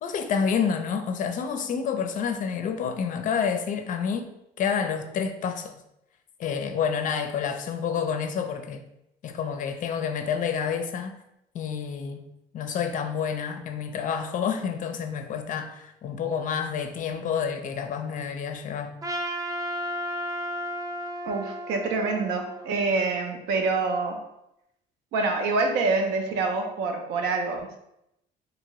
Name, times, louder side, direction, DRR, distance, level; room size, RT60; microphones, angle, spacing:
voice 1, 0.0-4.3 4.6-5.8 6.4-8.8 9.2-11.2 11.5-12.2 12.5-18.9, left 7 dB, 50° left, 7 dB, 0.4 m, -29 dB
Trumpet, 19.0-23.3, equal, 20° right, 0.4 m, -34 dB
voice 2, 21.2-24.2 25.1-27.8, right 3 dB, 90° right, 4 dB, 0.5 m, -26 dB
2.7 x 2.7 x 3.0 m, 0.83 s
cardioid pair, 110°, 17 cm